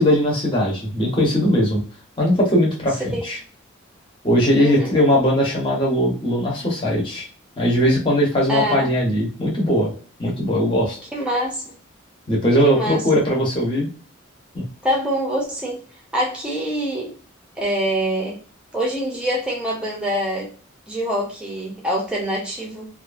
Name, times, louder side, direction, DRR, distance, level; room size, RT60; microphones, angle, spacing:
voice 1, 0.0-1.8 2.2-3.4 4.2-7.3 7.6-9.9 10.2-11.0 12.3-13.9 14.5-14.6, equal, 25° left, -3 dB, 0.9 m, -19 dB
voice 2, 4.6-5.0 8.5-8.9 11.1-11.6 12.6-13.0 14.8-15.8 16.1-17.1 17.6-18.4 18.7-20.5 20.9-22.9, equal, 5° right, -3 dB, 0.7 m, -25 dB
2.6 x 2.4 x 2.4 m, 0.39 s
head